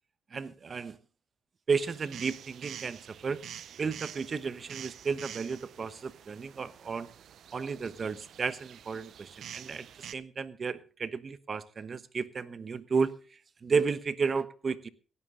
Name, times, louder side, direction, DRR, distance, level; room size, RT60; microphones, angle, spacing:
voice 1, 0.3-1.0 1.7-3.4 3.8-7.1 7.5-9.9 10.1-13.1 13.6-14.9, right 5 dB, 40° right, 1.0 m, -33 dB
sound 1, 1.8-10.1, right 9 dB, 65° right, 0.6 m, -47 dB
17.5 x 11.5 x 3.8 m
cardioid pair, 90°, 0 cm